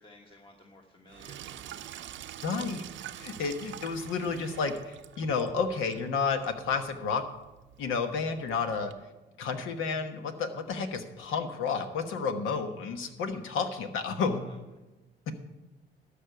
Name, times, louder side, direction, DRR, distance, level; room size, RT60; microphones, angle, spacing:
voice 1, 0.0-3.0 4.4-4.5 14.2-14.6, left 1 dB, 25° left, 1 dB, 1.3 m, -57 dB
Sink (filling or washing), 1.1-8.9, right 11 dB, 70° right, 0.6 m, -46 dB
voice 2, 2.4-2.8 3.2-7.2 7.8-8.9 9.4-14.4, left 5 dB, 85° left, 7 dB, 1.2 m, -31 dB
13.0 x 5.5 x 7.8 m, 1.1 s
cardioid pair, 90°, 20 cm